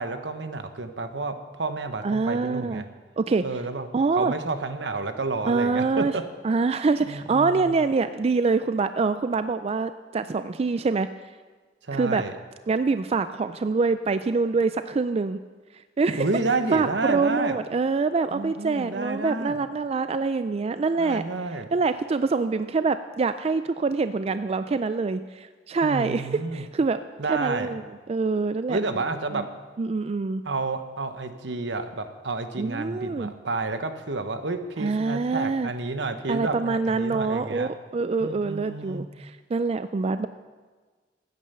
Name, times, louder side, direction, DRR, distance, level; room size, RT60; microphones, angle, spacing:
voice 1, 0.0-2.9 3.4-3.9 4.2-6.2 7.0-7.7 11.9-12.3 16.2-17.6 18.3-19.6 21.0-21.7 25.8-26.7 27.2-27.7 28.7-29.4 30.4-37.7 38.2-39.0, right 3 dB, 75° right, 8 dB, 1.1 m, -30 dB
voice 2, 2.0-2.8 3.2-3.4 3.9-4.3 5.5-6.2 6.4-11.1 11.9-12.2 12.7-15.4 16.0-16.3 16.7-21.2 21.7-28.8 29.3-29.5 29.8-30.4 32.6-33.3 34.8-35.7 36.3-40.3, right 4 dB, 35° right, 11 dB, 0.4 m, -25 dB
14.5 x 9.5 x 6.8 m, 1.4 s
head